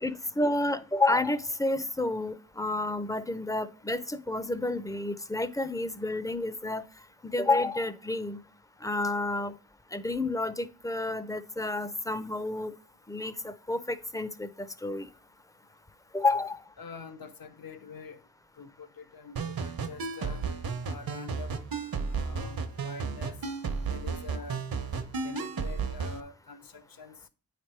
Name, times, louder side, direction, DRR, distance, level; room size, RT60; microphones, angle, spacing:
voice 1, 0.0-6.8 7.2-8.4 8.8-9.5 9.9-12.7 13.1-15.1 16.1-16.6, left 2 dB, 10° left, 0.5 m, -30 dB
voice 2, 16.8-18.2 18.6-20.4 20.8-21.6 22.1-23.4 23.9-24.6 25.2-27.1, left 4 dB, 65° left, 0.9 m, -45 dB
sound 1, 19.4-26.2, right 5 dB, 65° right, 0.9 m, -33 dB
9.0 x 3.4 x 4.4 m
wide cardioid pair, 80°, 38 cm